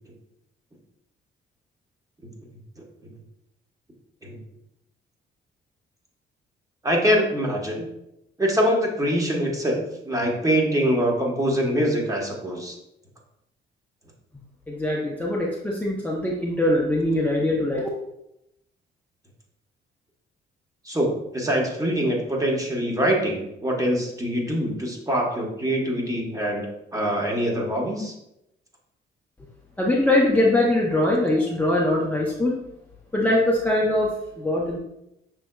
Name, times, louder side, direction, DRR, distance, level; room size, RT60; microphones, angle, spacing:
voice 1, 6.8-7.9 8.4-12.8 20.8-28.1, equal, 15° right, -1 dB, 1.2 m, -24 dB
voice 2, 14.7-17.9 29.8-32.5 33.1-34.8, left 1 dB, 5° left, -4 dB, 0.7 m, -22 dB
6.2 x 3.4 x 2.2 m, 0.83 s
cardioid pair, 90°, 20 cm